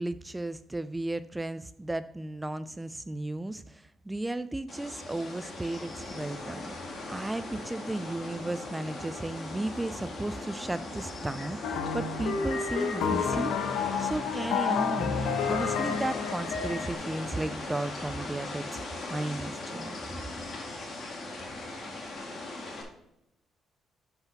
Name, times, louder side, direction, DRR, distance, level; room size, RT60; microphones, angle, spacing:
voice 1, 0.0-13.5 14.0-18.8 19.1-20.0, right 2 dB, 10° right, 13 dB, 0.3 m, -34 dB
sound 1, 4.7-22.8, left 2 dB, 50° left, 2.0 m, -39 dB
sound 2, 11.6-16.9, left 6 dB, 90° left, 0.8 m, -30 dB
5.8 x 5.6 x 5.8 m, 0.84 s
cardioid pair, 90°, 0 cm